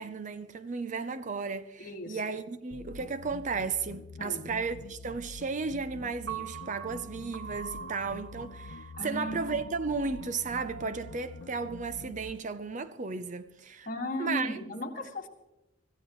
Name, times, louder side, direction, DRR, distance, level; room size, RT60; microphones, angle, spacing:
voice 1, 0.0-13.9 14.2-14.6, right 4 dB, 40° right, 0.6 m, -34 dB
voice 2, 1.8-2.2 4.2-4.4 9.0-9.6 13.9-15.3, left 1 dB, 45° left, 2.0 m, -36 dB
sound 1, 2.7-12.3, left 3 dB, 70° left, 0.6 m, -46 dB
Piano, 6.3-12.4, right 7 dB, 80° right, 0.8 m, -45 dB
25.0 x 14.5 x 3.2 m
head